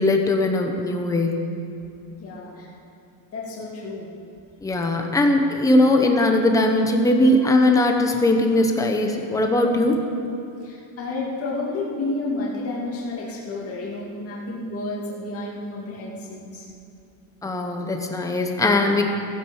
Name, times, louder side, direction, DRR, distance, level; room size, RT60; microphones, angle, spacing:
voice 1, 0.0-1.4 4.6-10.0 17.4-19.1, left 1 dB, 5° left, 3 dB, 0.9 m, -20 dB
voice 2, 2.2-2.7 3.3-4.1 10.6-16.7, left 2 dB, 30° left, -5 dB, 2.6 m, -31 dB
15.5 x 10.0 x 7.2 m, 2.7 s
cardioid pair, 170°, 45 cm